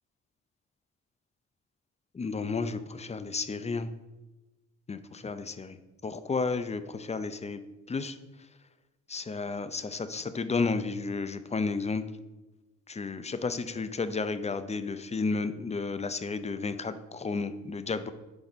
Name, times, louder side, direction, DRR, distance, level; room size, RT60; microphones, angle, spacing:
voice 1, 2.1-3.9 4.9-5.8 6.0-7.6 7.9-8.2 9.1-12.0 12.9-18.1, left 4 dB, 20° left, 12 dB, 0.6 m, -32 dB
10.5 x 4.8 x 4.1 m, 1.1 s
cardioid pair, 90°, 30 cm